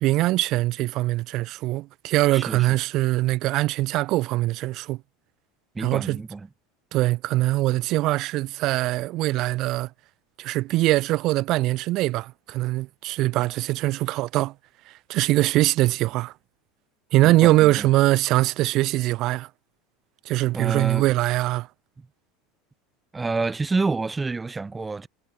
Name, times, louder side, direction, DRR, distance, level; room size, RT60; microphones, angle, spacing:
voice 1, 0.0-5.0 5.8-6.2 6.9-9.9 10.4-14.5 14.9-16.3 17.1-19.5 20.2-21.7, right 17 dB, 45° right, 1.0 m, -22 dB
voice 2, 2.3-2.8 5.7-6.5 17.2-17.9 20.5-21.1 23.1-25.1, right 3 dB, 10° right, 0.4 m, -28 dB
supercardioid pair, 160°, 0 cm